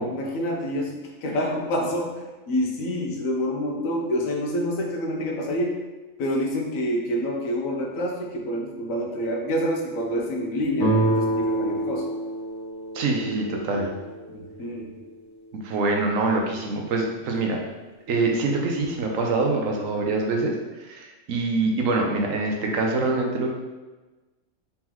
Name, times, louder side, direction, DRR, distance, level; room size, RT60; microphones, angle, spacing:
voice 1, 0.0-5.8 6.2-12.0 14.3-14.9, equal, 80° left, 0 dB, 1.2 m, -27 dB
sound 1, 10.8-14.4, right 1 dB, 20° left, 0.7 m, -27 dB
voice 2, 12.9-13.9 15.5-17.6 18.1-23.5, right 3 dB, 75° right, 1 dB, 1.1 m, -25 dB
4.2 x 3.8 x 3.0 m, 1.2 s
omnidirectional pair, 1.4 m